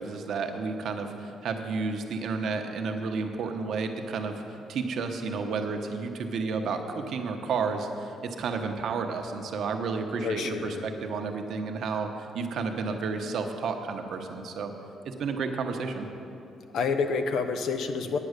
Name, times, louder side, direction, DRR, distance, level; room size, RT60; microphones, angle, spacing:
voice 1, 0.0-4.4 4.7-14.7 15.0-16.1, right 4 dB, 70° right, 5 dB, 1.0 m, -31 dB
voice 2, 10.2-10.8 16.7-18.2, left 5 dB, 75° left, 7 dB, 0.8 m, -28 dB
9.4 x 8.5 x 6.6 m, 2.8 s
cardioid pair, 90°, 0 cm